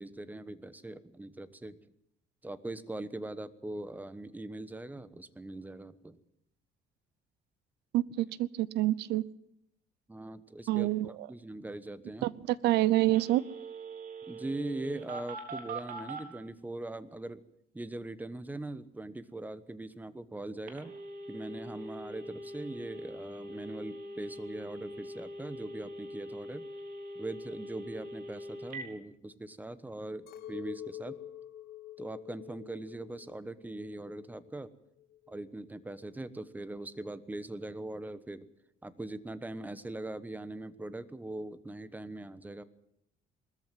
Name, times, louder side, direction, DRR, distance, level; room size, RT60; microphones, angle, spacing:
voice 1, 0.0-1.8 2.4-6.2 10.1-12.3 14.3-17.4 17.7-20.9 21.3-26.6 27.1-31.2 32.0-34.7 35.3-38.5 38.8-42.6, right 2 dB, 10° right, 15 dB, 1.2 m, -41 dB
voice 2, 7.9-9.2 10.7-11.3 12.2-13.4, right 16 dB, 80° right, 22 dB, 0.7 m, -27 dB
Telephone, 13.1-16.2 20.7-28.8, right 1 dB, 60° right, 4.1 m, -43 dB
Chink clink, 30.3-34.6 34.9-35.7, left 11 dB, 65° left, 4.0 m, -47 dB
20.5 x 14.0 x 9.3 m, 0.76 s
cardioid pair, 110°, 17 cm